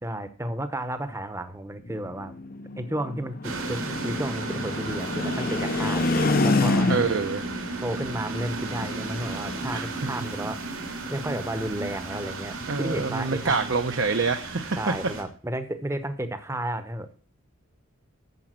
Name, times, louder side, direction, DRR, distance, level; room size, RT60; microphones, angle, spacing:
voice 1, 0.0-2.3 2.8-7.1 7.8-10.6 11.1-13.7 14.8-17.1, right 1 dB, 15° right, 10 dB, 0.8 m, -32 dB
sound 1, 1.9-7.3, left 3 dB, 45° left, 0.6 m, -27 dB
sound 2, 3.4-15.2, right 2 dB, 85° right, 2.5 m, -34 dB
voice 2, 6.9-7.4 9.7-9.9 12.7-14.9, right 4 dB, 60° right, 7 dB, 0.8 m, -26 dB
9.3 x 7.1 x 7.4 m, 0.44 s
head